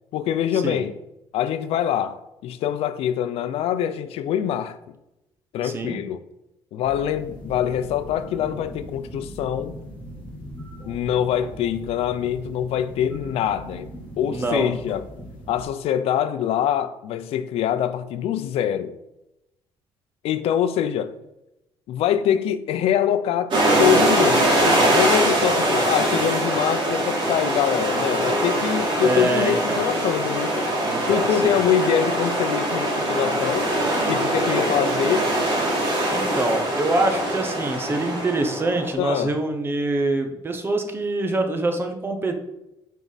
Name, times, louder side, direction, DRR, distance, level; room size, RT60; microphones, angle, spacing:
voice 1, 0.1-0.9 1.3-4.8 5.5-6.2 6.7-9.7 10.9-13.9 14.2-15.0 15.5-18.9 20.2-21.1 21.9-23.5 23.8-24.5 24.9-30.7 31.1-33.7 34.1-35.3 39.0-39.3, left 9 dB, 70° left, 0.7 m, -24 dB
voice 2, 5.6-6.0 14.3-14.7 29.0-29.8 30.8-31.6 36.1-42.4, right 2 dB, 20° right, 1.0 m, -25 dB
sound 1, 6.8-15.6, equal, 15° left, 2.8 m, -40 dB
sound 2, 23.5-38.9, right 1 dB, 50° right, 2.9 m, -22 dB
9.2 x 4.7 x 4.1 m
cardioid pair, 145°, 10 cm